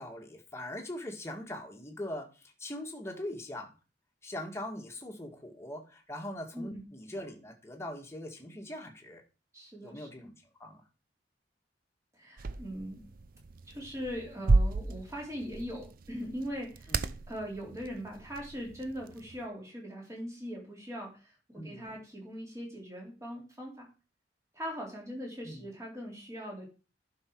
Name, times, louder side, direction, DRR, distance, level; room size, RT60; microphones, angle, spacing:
voice 1, 0.0-3.7 4.2-9.2 9.8-10.3 10.6-10.8 16.9-17.1 21.6-21.9 25.4-25.7, left 1 dB, 15° left, 1 dB, 1.9 m, -41 dB
voice 2, 9.5-10.3 12.1-13.0 13.7-23.9 24.5-26.7, equal, 15° right, -1 dB, 3.4 m, -41 dB
sound 1, 12.4-19.5, right 3 dB, 55° right, 0.5 m, -33 dB
11.0 x 5.6 x 4.7 m, 0.33 s
head